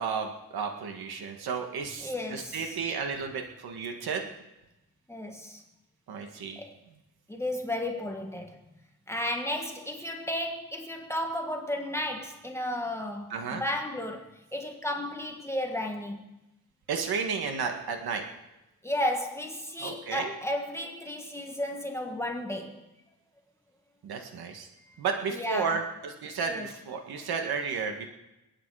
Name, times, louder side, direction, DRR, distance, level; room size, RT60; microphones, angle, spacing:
voice 1, 0.0-4.3 6.1-6.6 13.3-13.6 16.9-18.2 19.8-20.3 24.0-24.7 25.0-28.1, right 5 dB, 90° right, 4 dB, 1.9 m, -32 dB
voice 2, 2.0-2.8 5.1-5.6 6.6-6.7 7.3-8.6 9.1-16.2 18.8-22.8 24.9-25.0 25.3-25.8 26.5-26.7, left 1 dB, 5° left, 2 dB, 1.6 m, -33 dB
28.5 x 9.4 x 4.9 m, 0.96 s
wide cardioid pair, 140°, 36 cm